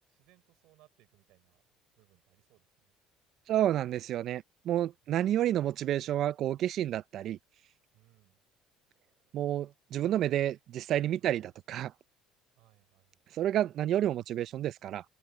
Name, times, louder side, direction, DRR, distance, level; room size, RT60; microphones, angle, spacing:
voice 1, 0.1-1.6 2.0-2.9 7.9-8.4 11.2-11.4 12.6-13.2, right 19 dB, 75° right, 5.6 m, -66 dB
voice 2, 3.5-7.4 9.3-11.9 13.3-15.0, right 12 dB, 55° right, 0.4 m, -30 dB
cardioid pair, 115°, 0 cm